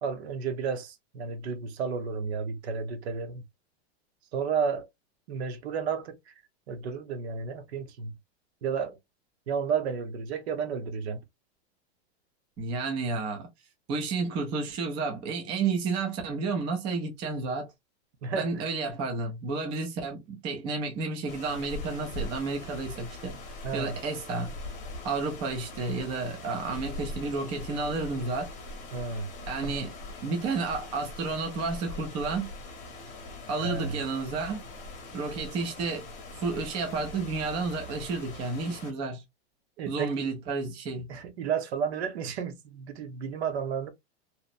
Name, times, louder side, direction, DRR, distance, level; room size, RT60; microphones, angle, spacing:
voice 1, 0.0-3.4 4.3-4.9 5.3-6.3 6.7-8.1 8.6-9.0 9.5-11.2 18.2-18.7 23.6-23.9 28.9-29.3 29.5-29.8 33.6-34.0 39.8-40.3 41.1-43.9, right 6 dB, 70° right, 0.8 m, -32 dB
voice 2, 12.6-13.5 13.9-17.7 18.3-23.3 23.7-24.5 25.0-28.5 29.5-29.9 30.2-32.5 33.5-34.6 35.1-36.1 36.4-39.2 39.9-41.1, right 4 dB, 15° right, 0.4 m, -31 dB
sound 1, 21.3-38.9, left 2 dB, 20° left, 0.8 m, -42 dB
2.8 x 2.1 x 2.4 m
supercardioid pair, 165°, 33 cm